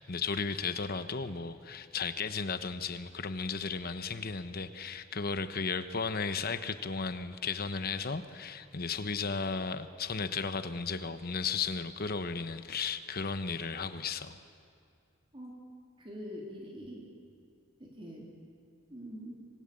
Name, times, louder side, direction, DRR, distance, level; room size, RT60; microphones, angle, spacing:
voice 1, 0.0-14.4, left 5 dB, 45° left, 11 dB, 1.0 m, -35 dB
voice 2, 16.0-17.1 17.8-18.2 18.9-19.4, equal, 25° right, -2 dB, 3.6 m, -44 dB
26.0 x 20.0 x 8.7 m, 2.4 s
head